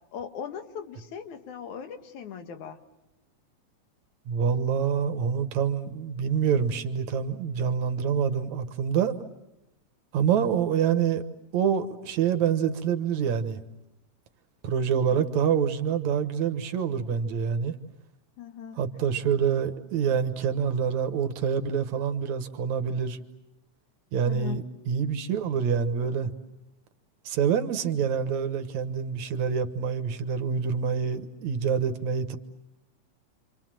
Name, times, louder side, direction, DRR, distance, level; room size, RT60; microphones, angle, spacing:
voice 1, 0.1-2.8 15.0-15.2 18.4-18.8 24.2-24.6, left 8 dB, 80° left, 7 dB, 3.0 m, -39 dB
voice 2, 4.3-9.1 10.1-11.2 11.5-13.6 14.6-17.8 18.8-23.2 24.1-26.3 27.3-32.4, right 7 dB, 75° right, 9 dB, 2.6 m, -26 dB
28.0 x 26.5 x 7.6 m, 0.92 s
omnidirectional pair, 3.4 m